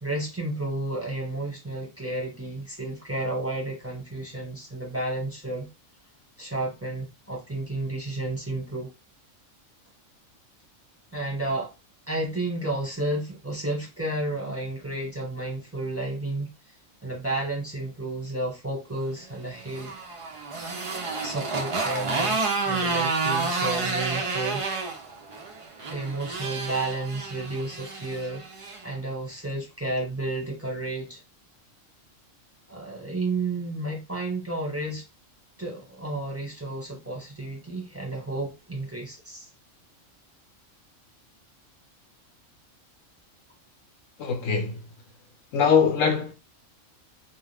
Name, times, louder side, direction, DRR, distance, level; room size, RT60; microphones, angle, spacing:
voice 1, 0.0-5.7 6.4-8.9 11.1-11.7 12.1-16.5 17.0-19.9 21.2-24.6 25.9-28.4 28.8-31.2 32.7-35.0 35.6-39.5, right 2 dB, 10° right, 1.1 m, -31 dB
Motorcycle, 19.4-28.8, right 4 dB, 50° right, 0.4 m, -30 dB
voice 2, 44.2-44.8 45.5-46.3, left 6 dB, 80° left, 1.0 m, -22 dB
2.4 x 2.3 x 3.4 m
omnidirectional pair, 1.3 m